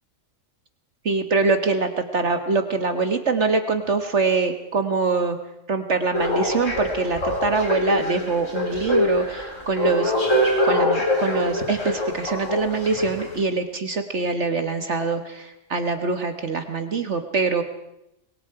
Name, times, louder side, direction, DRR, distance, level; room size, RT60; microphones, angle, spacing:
voice 1, 1.0-5.4 5.7-10.1 10.6-17.6, right 4 dB, 60° right, 7 dB, 1.7 m, -24 dB
sound 1, 6.1-13.4, left 1 dB, 70° left, 4.7 m, -24 dB
27.0 x 22.5 x 4.8 m, 0.85 s
omnidirectional pair, 1.4 m